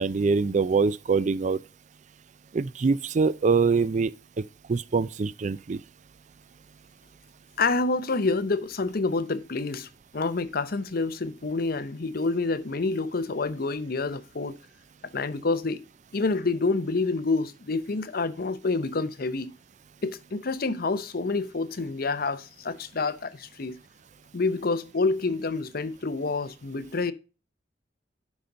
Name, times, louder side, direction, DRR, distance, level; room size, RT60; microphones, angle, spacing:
voice 1, 0.0-1.6 2.5-4.1 4.4-5.8, right 4 dB, 40° right, 0.4 m, -24 dB
voice 2, 7.6-9.9 10.1-14.6 15.1-15.8 16.1-19.5 20.0-23.8 24.3-27.1, left 3 dB, 55° left, 0.7 m, -28 dB
11.0 x 5.3 x 3.8 m
head